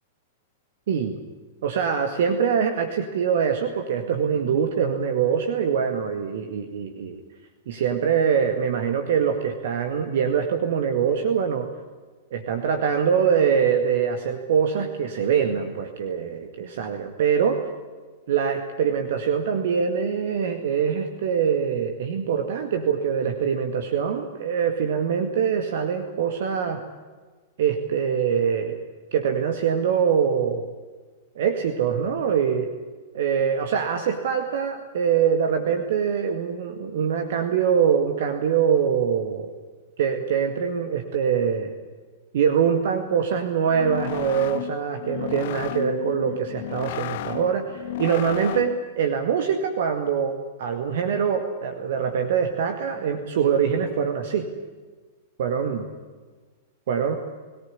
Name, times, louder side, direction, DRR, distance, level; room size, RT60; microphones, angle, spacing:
voice 1, 1.6-7.2 7.7-11.7 12.3-17.6 18.3-26.8 27.6-28.8 29.1-30.7 31.4-32.7 33.1-39.5 40.0-41.7 42.3-54.5 55.4-55.9 56.9-57.1, right 7 dB, 55° right, 6 dB, 2.0 m, -24 dB
sound 1, 43.7-48.9, left 15 dB, 50° left, 0.6 m, -33 dB
22.5 x 18.0 x 9.7 m, 1.4 s
figure-of-eight pair, 100°, 0 cm